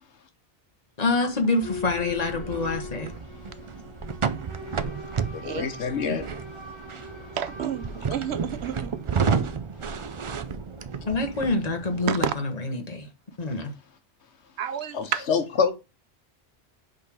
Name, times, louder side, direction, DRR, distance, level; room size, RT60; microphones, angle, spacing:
voice 1, 1.0-3.1 6.1-6.2 11.1-13.1 13.4-13.7, left 3 dB, 40° left, 1.3 m, -26 dB
sound 1, 1.3-12.3, right 5 dB, 40° right, 0.4 m, -32 dB
Boat Water vehicle / Alarm, 1.6-12.2, left 2 dB, 25° right, 2.4 m, -42 dB
voice 2, 5.3-6.2 14.9-15.7, left 6 dB, 85° left, 1.3 m, -26 dB
voice 3, 7.4-8.9 12.1-12.3 14.6-15.2, right 9 dB, 75° right, 0.9 m, -30 dB
5.3 x 3.9 x 5.8 m
omnidirectional pair, 1.1 m